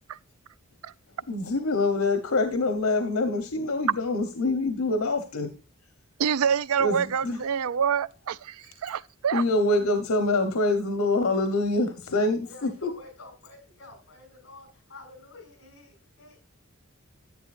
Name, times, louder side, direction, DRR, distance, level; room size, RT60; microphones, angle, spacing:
voice 1, 1.3-5.5 6.8-7.4 9.3-12.9, left 2 dB, 90° left, 1.1 m, -25 dB
voice 2, 6.2-9.4, right 7 dB, 90° right, 0.4 m, -26 dB
voice 3, 12.5-16.4, left 3 dB, 60° left, 6.0 m, -49 dB
11.0 x 9.2 x 2.5 m
head